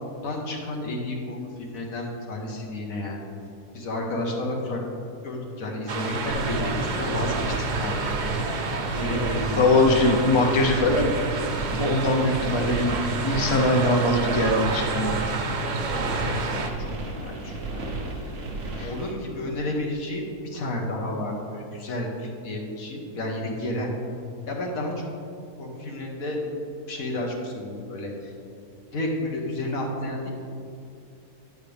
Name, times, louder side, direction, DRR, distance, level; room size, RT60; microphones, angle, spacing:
voice 1, 0.0-3.2 3.7-4.8 5.2-8.1 8.9-9.8 10.2-10.3 15.9-18.5 18.8-23.9 24.5-25.1 25.6-26.4 26.9-28.3 28.9-30.3, left 1 dB, 60° left, 0 dB, 1.6 m, -31 dB
sound 1, 5.9-16.7, right 3 dB, 75° right, 0.4 m, -29 dB
sound 2, 6.3-19.1, right 2 dB, 55° right, 1.2 m, -34 dB
voice 2, 9.6-11.1 11.7-15.2 18.8-18.9, left 2 dB, 40° left, 2 dB, 0.4 m, -22 dB
9.6 x 8.9 x 3.4 m, 2.6 s
omnidirectional pair, 1.7 m